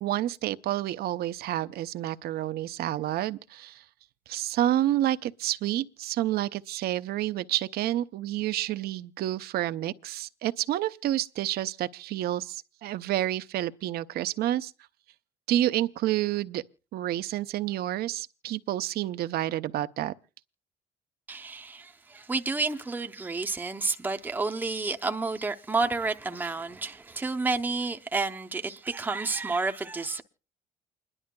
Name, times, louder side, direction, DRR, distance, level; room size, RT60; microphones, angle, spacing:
voice 1, 0.0-3.8 4.3-14.7 15.5-16.6 16.9-20.1, right 13 dB, 65° right, 0.6 m, -29 dB
voice 2, 21.3-30.2, right 3 dB, 10° right, 0.6 m, -30 dB
29.0 x 11.0 x 2.2 m
cardioid pair, 110°, 17 cm